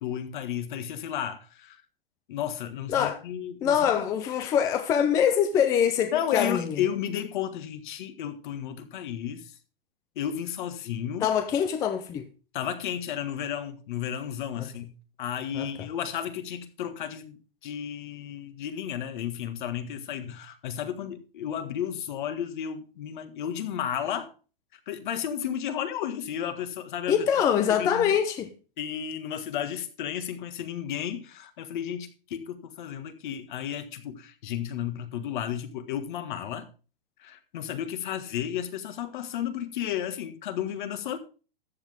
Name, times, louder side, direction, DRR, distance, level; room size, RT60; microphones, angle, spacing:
voice 1, 0.0-1.8 2.3-4.0 6.1-9.5 10.2-11.3 12.5-14.9 15.2-24.3 24.7-27.2 27.8-28.0 28.8-36.7 37.2-41.2, left 9 dB, 55° left, 1.7 m, -33 dB
voice 2, 2.9-3.2 3.6-6.8 11.2-12.3 14.6-14.7 15.5-15.9 27.1-28.5, left 8 dB, 10° left, 0.4 m, -24 dB
13.5 x 7.8 x 3.5 m
hypercardioid pair, 155°, 29 cm